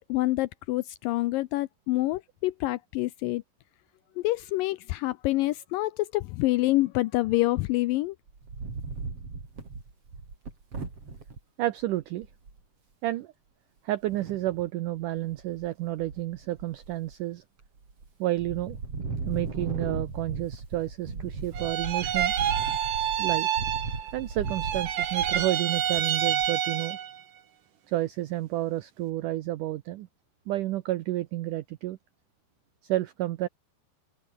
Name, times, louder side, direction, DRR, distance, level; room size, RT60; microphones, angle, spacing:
voice 1, 0.1-3.4 4.2-8.1, left 18 dB, 85° left, 1.9 m, -27 dB
Wind, 8.3-11.4 11.9-12.0 12.2-12.6 14.1-14.7 15.2-15.7 16.0-17.1 17.6-18.1 18.4-26.6, right 4 dB, 35° right, 5.6 m, -37 dB
voice 2, 11.6-12.3 13.0-13.3 13.8-17.4 18.2-18.8 19.3-22.4 23.2-23.6 24.1-27.0 27.9-30.1 30.5-32.0 32.8-33.5, right 15 dB, 80° right, 1.8 m, -30 dB
sound 1, 21.5-24.2 24.4-27.2, right 10 dB, 55° right, 3.1 m, -28 dB
open air
omnidirectional pair, 4.8 m